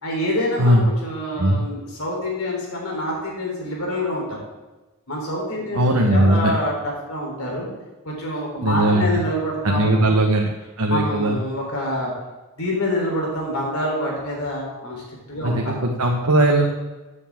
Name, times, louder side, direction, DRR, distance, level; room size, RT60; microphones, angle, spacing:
voice 1, 0.0-4.4 5.1-7.7 8.0-10.1 10.9-12.1 12.6-15.0 15.3-15.8, left 1 dB, 70° left, -2 dB, 3.8 m, -26 dB
voice 2, 5.7-6.5 8.6-9.2 9.6-10.5 10.8-11.4 15.4-16.7, right 1 dB, 85° right, 0 dB, 1.2 m, -18 dB
15.0 x 8.4 x 3.7 m, 1.1 s
head